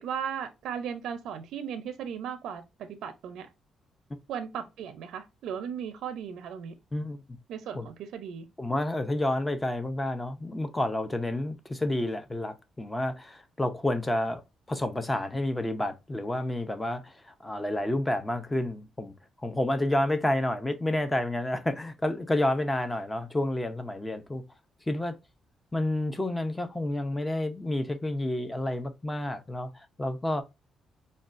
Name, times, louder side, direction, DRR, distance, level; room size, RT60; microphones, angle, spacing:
voice 1, 0.0-3.5 4.3-6.7 7.5-8.5, right 8 dB, 85° right, 0.5 m, -36 dB
voice 2, 6.9-7.2 7.7-7.9 8.6-14.4 14.7-17.1 17.4-19.1 19.4-24.4 24.9-25.2 25.7-29.7 30.0-30.4, left 1 dB, 10° left, 0.6 m, -29 dB
5.2 x 2.3 x 2.4 m
cardioid pair, 120°, 0 cm